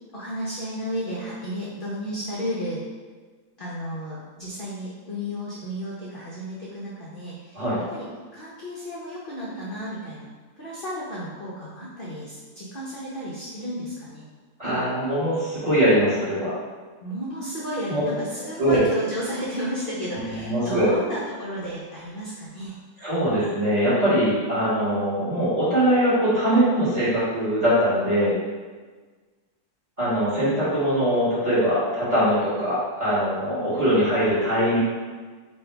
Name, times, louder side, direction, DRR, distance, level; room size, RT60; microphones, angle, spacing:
voice 1, 0.1-2.8 3.6-8.1 8.3-10.3 10.6-14.3 17.0-22.8 33.5-34.0, equal, 50° left, -7 dB, 0.6 m, -33 dB
voice 2, 14.6-16.5 17.9-18.0 18.6-18.8 20.3-20.9 23.0-28.3 30.0-34.8, equal, 25° right, -11 dB, 1.4 m, -22 dB
3.4 x 2.7 x 4.5 m, 1.4 s
omnidirectional pair, 1.9 m